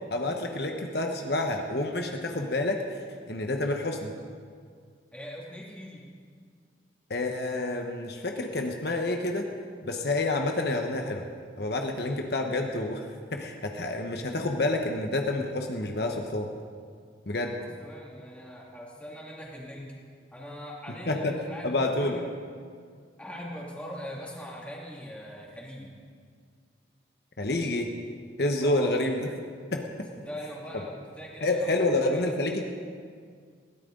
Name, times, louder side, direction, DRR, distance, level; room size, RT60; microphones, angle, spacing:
voice 1, 0.1-2.8 3.3-4.1 7.1-9.5 9.8-11.2 11.6-16.5 17.3-17.6 21.1-21.3 21.6-22.2 27.4-27.9 28.4-29.2 29.7-30.1 31.4-32.7, left 2 dB, 60° left, 3 dB, 1.1 m, -28 dB
voice 2, 5.1-6.1 17.4-19.9 20.3-22.2 23.2-25.9 28.6-29.0 30.1-32.3, equal, 5° left, -3 dB, 2.6 m, -41 dB
21.5 x 16.5 x 3.9 m, 2.1 s
head